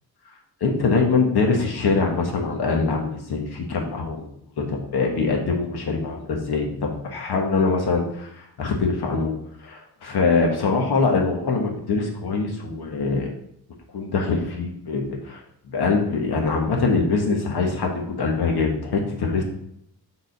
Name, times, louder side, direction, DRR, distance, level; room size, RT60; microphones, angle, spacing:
voice 1, 0.6-4.3 4.6-9.3 9.6-13.3 13.9-19.4, left 4 dB, 75° left, 1 dB, 1.4 m, -23 dB
6.4 x 3.9 x 4.0 m, 0.74 s
wide cardioid pair, 115°, 39 cm